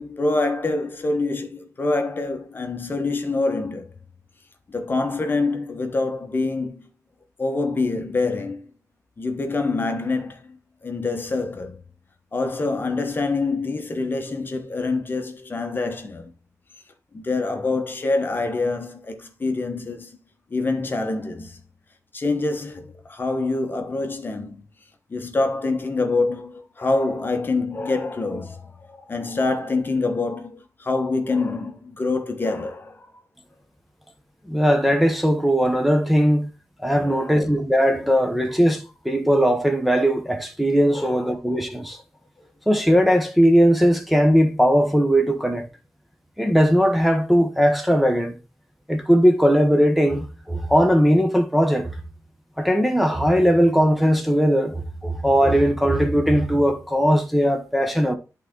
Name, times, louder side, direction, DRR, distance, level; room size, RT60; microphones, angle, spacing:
voice 1, 0.0-3.9 4.7-6.9 7.4-8.7 9.2-11.8 12.3-16.3 17.1-20.2 20.5-21.6 22.1-24.6 25.1-33.1 37.0-37.4 40.9-41.6, left 3 dB, 35° left, 1.0 m, -26 dB
voice 2, 34.5-36.5 36.8-42.0 42.7-45.7 46.4-48.4 48.9-52.0 52.6-58.2, equal, ahead, 0.9 m, -19 dB
11.0 x 3.8 x 3.7 m
wide cardioid pair, 140°, 6 cm